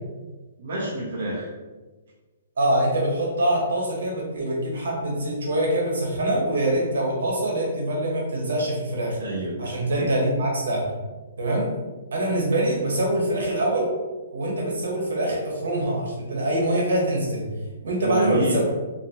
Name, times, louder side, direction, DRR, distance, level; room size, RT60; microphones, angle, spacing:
voice 1, 0.6-1.5 9.2-9.6 9.9-10.1 18.0-18.6, right 1 dB, 60° right, -6 dB, 0.7 m, -28 dB
voice 2, 2.6-9.2 9.6-10.8 11.4-11.7 12.1-13.9 14.3-17.5 17.8-18.6, right 1 dB, 85° right, -2 dB, 1.1 m, -24 dB
2.8 x 2.7 x 2.7 m, 1.3 s
hypercardioid pair, 170°, 0 cm